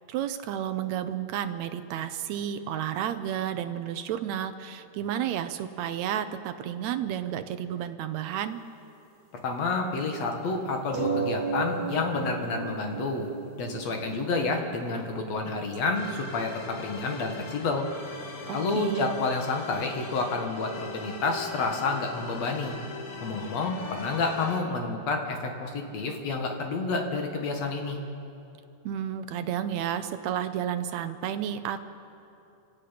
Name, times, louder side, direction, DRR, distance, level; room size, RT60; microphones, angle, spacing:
voice 1, 0.1-8.6 18.5-19.2 28.8-31.9, right 10 dB, 75° right, 9 dB, 1.7 m, -31 dB
voice 2, 9.4-13.3 13.6-17.9 18.5-22.8 23.2-28.0, left 3 dB, 55° left, 3 dB, 2.6 m, -29 dB
sound 1, 10.9-16.0, right 4 dB, 55° right, 1.0 m, -34 dB
sound 2, 15.9-24.6, left 3 dB, 85° left, 0.8 m, -41 dB
27.5 x 17.0 x 5.9 m, 2.7 s
omnidirectional pair, 3.8 m